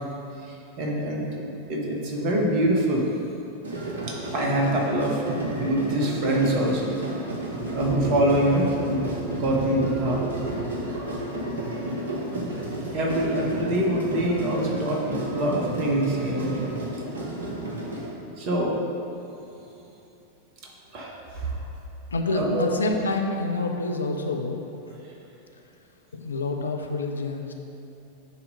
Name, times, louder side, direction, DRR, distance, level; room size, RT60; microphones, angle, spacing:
voice 1, 0.4-3.1 4.1-6.9 7.7-10.2 12.3-12.5 12.9-16.6 18.4-18.8 20.9-21.7 22.3-22.6, right 1 dB, 40° right, -1 dB, 1.3 m, -25 dB
sound 1, 3.6-18.1, right 1 dB, 65° right, 1.0 m, -32 dB
voice 2, 22.1-24.6 26.1-27.5, left 2 dB, 75° left, 3 dB, 0.5 m, -27 dB
9.2 x 3.1 x 5.2 m, 2.9 s
figure-of-eight pair, 90°, 0 cm